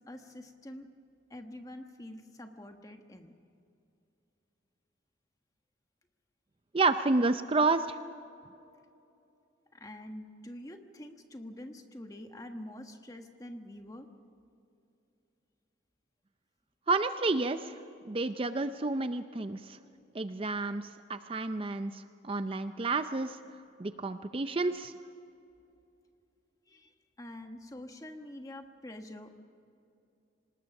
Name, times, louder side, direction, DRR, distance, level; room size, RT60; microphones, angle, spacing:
voice 1, 0.1-0.9 1.3-3.3 9.7-14.1 26.7-26.9 27.2-29.4, left 1 dB, 20° left, 5 dB, 1.3 m, -46 dB
voice 2, 6.7-8.0 16.9-17.8 18.1-19.8 20.1-23.4 23.8-24.9, right 3 dB, 30° right, 10 dB, 0.5 m, -30 dB
25.5 x 19.5 x 6.0 m, 2.7 s
head